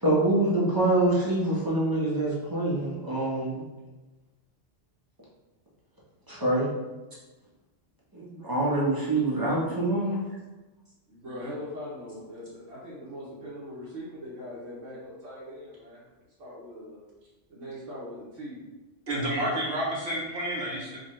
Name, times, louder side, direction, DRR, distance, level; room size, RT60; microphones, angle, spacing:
voice 1, 0.0-3.6 6.3-6.7 8.1-10.2, right 2 dB, 20° right, -6 dB, 0.6 m, -25 dB
voice 2, 11.1-16.1 16.4-17.0 17.5-18.6 19.2-19.5, equal, 80° right, -9 dB, 1.2 m, -41 dB
voice 3, 19.1-21.0, right 1 dB, 60° right, -5 dB, 0.9 m, -30 dB
4.0 x 2.3 x 3.1 m, 1.1 s
omnidirectional pair, 1.3 m